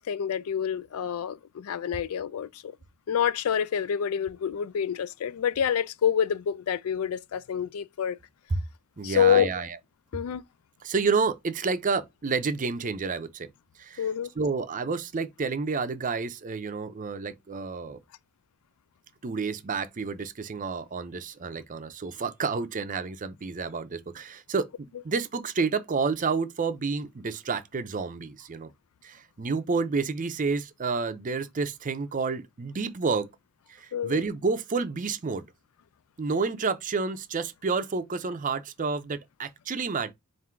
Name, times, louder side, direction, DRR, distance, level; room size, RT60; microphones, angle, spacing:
voice 1, 0.0-2.5 3.1-8.2 9.0-9.5 10.1-10.4 14.0-14.3 33.9-34.2, left 8 dB, 85° left, 0.4 m, -27 dB
voice 2, 9.0-9.8 10.8-13.5 13.8-14.1 14.4-18.0 19.2-28.7 29.0-33.3 33.7-35.4 36.2-40.1, right 4 dB, 40° right, 0.5 m, -30 dB
3.7 x 2.6 x 4.4 m
head